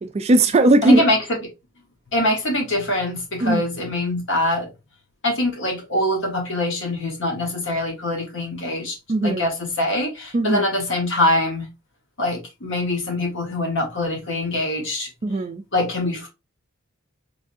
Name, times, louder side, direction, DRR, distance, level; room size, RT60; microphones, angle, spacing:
voice 1, 0.0-1.0 3.4-3.6 9.1-9.4 10.3-10.6 15.2-15.6, right 2 dB, 30° right, 0.3 m, -18 dB
voice 2, 0.8-1.2 2.1-4.7 5.2-9.0 9.2-11.7 12.2-15.1 15.7-16.3, left 1 dB, 55° left, 1.3 m, -23 dB
3.6 x 3.2 x 2.6 m
head